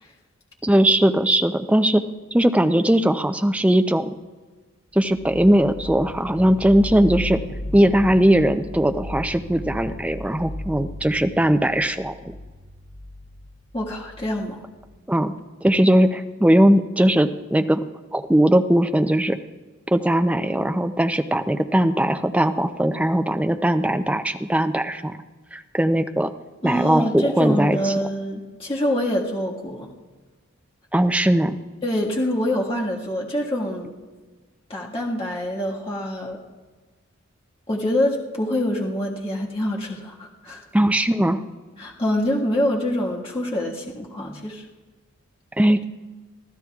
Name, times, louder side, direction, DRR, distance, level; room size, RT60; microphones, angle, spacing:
voice 1, 0.6-2.0 2.3-4.1 4.9-7.4 7.7-12.1 15.1-15.3 15.6-17.8 18.1-19.4 19.9-25.2 25.5-26.3 26.6-27.9 30.9-31.6 40.7-41.5 45.6-45.8, right 1 dB, 5° right, 7 dB, 0.4 m, -19 dB
sound 1, 5.1-15.0, left 1 dB, 80° left, 2.8 m, -36 dB
voice 2, 13.7-14.6 26.6-29.9 31.8-33.9 34.7-36.4 37.7-40.6 41.8-44.6, left 1 dB, 25° left, -4 dB, 1.7 m, -25 dB
23.0 x 14.5 x 2.4 m, 1.3 s
head